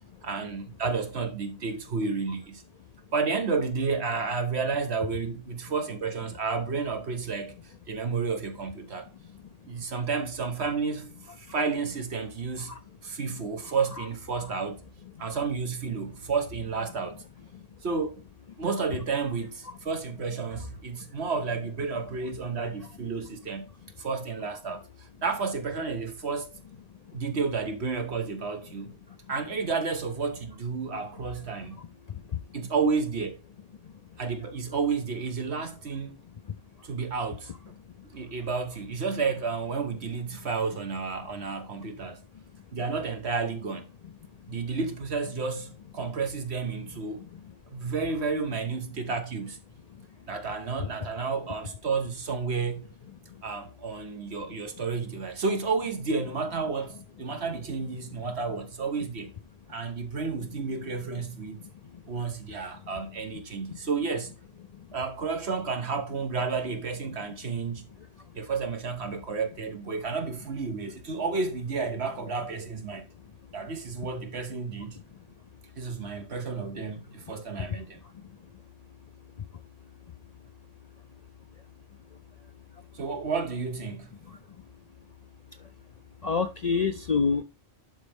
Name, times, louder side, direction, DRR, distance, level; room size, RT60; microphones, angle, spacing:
voice 1, 0.2-2.6 3.1-7.6 7.9-9.1 9.6-12.8 13.0-14.8 15.2-17.2 17.8-18.2 18.6-23.7 24.0-26.5 27.1-29.0 29.3-31.8 32.5-33.4 34.2-36.2 36.8-37.5 38.0-42.2 42.7-43.9 44.5-47.2 47.7-49.6 50.3-52.9 53.4-59.3 59.7-61.6 62.1-64.3 64.9-67.9 68.3-73.1 73.5-75.0 75.8-78.0 82.9-84.1, right 4 dB, 65° right, 1.5 m, -31 dB
voice 2, 86.2-87.4, left 5 dB, 50° left, 0.5 m, -27 dB
11.0 x 4.2 x 3.4 m
omnidirectional pair, 1.2 m